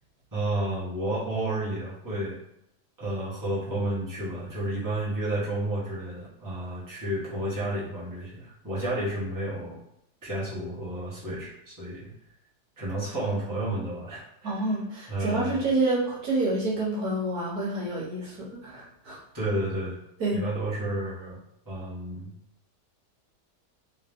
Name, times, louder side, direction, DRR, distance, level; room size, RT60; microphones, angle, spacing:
voice 1, 0.3-2.4 3.0-9.8 10.2-12.1 12.8-14.7 15.1-15.6 19.3-20.0 20.3-21.4 21.6-22.3, right 1 dB, 15° right, -7 dB, 1.2 m, -31 dB
voice 2, 14.4-19.2 20.2-20.4, right 2 dB, 70° right, -5 dB, 1.6 m, -28 dB
3.6 x 3.0 x 3.5 m, 0.79 s
omnidirectional pair, 1.7 m